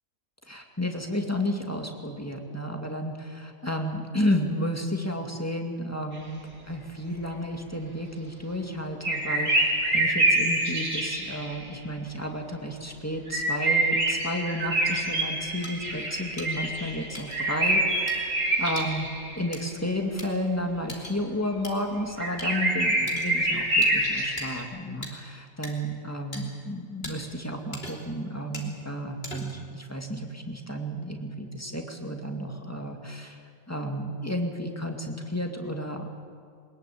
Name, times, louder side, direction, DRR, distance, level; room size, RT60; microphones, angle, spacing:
voice 1, 0.5-6.4 6.7-18.3 18.6-19.1 19.4-36.1, equal, 10° left, 3 dB, 2.2 m, -32 dB
sound 1, 9.0-11.6 13.3-19.6 22.2-24.6, right 2 dB, 85° right, 4.8 m, -26 dB
sound 2, 15.6-15.7 16.4-16.5 17.1-17.4 18.1-18.2 18.8-18.9 19.5-19.6 20.2-20.3 20.9-21.2 21.6-21.7 22.4-22.5 23.1-23.3 23.8-23.9 24.4-24.5 25.0-25.1 25.6-25.7 26.3-26.4 27.0-27.1 27.7-28.1 28.5-28.7 29.2-29.6, left 1 dB, 40° left, 3.4 m, -39 dB
22.0 x 21.0 x 8.6 m, 2.3 s
omnidirectional pair, 1.5 m